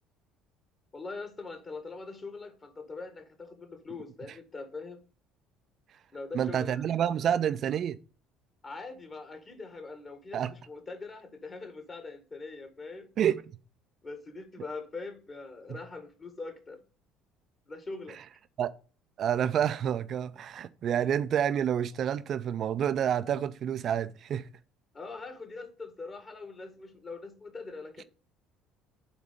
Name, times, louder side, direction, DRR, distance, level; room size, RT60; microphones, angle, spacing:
voice 1, 0.9-5.0 6.1-6.9 8.6-13.2 14.0-16.8 17.7-18.2 24.9-28.0, left 3 dB, 30° left, 1.7 m, -42 dB
voice 2, 6.3-8.0 10.3-10.5 13.2-13.4 18.6-18.7 19.2-24.5, right 9 dB, 45° right, 0.4 m, -28 dB
8.2 x 3.6 x 5.2 m
figure-of-eight pair, 55°, 0 cm